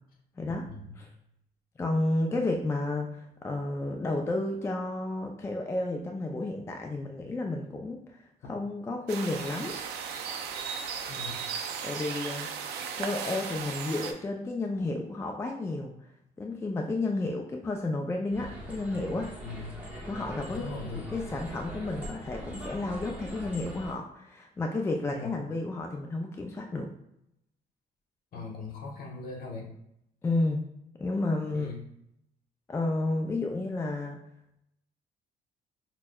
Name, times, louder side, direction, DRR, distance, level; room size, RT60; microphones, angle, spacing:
voice 1, 0.4-0.7 1.0-1.1 1.8-9.8 11.8-12.5 13.0-15.9 16.4-19.3 20.1-20.7 21.1-26.9 30.2-30.6 31.0-31.7 32.7-34.2, left 2 dB, 15° left, 2 dB, 0.4 m, -31 dB
sound 1, 9.1-14.1, right 6 dB, 80° right, 0.5 m, -36 dB
voice 2, 11.1-11.4 19.4-19.7 20.5-21.2 25.1-25.3 28.3-29.7 31.5-31.8, left 4 dB, 60° left, 0 dB, 1.0 m, -39 dB
sound 2, 18.3-23.9, equal, 10° right, 0.9 m, -42 dB
5.7 x 2.1 x 2.2 m, 0.77 s
cardioid pair, 110°, 17 cm